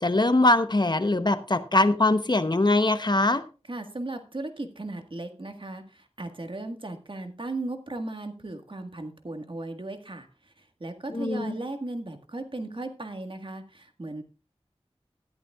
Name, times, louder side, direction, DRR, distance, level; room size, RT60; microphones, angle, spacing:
voice 1, 0.0-3.4 11.1-11.6, left 2 dB, 40° left, 10 dB, 0.9 m, -22 dB
voice 2, 3.7-14.2, right 2 dB, 50° right, 6 dB, 1.6 m, -36 dB
13.0 x 11.5 x 2.4 m, 0.32 s
wide cardioid pair, 50°, 11 cm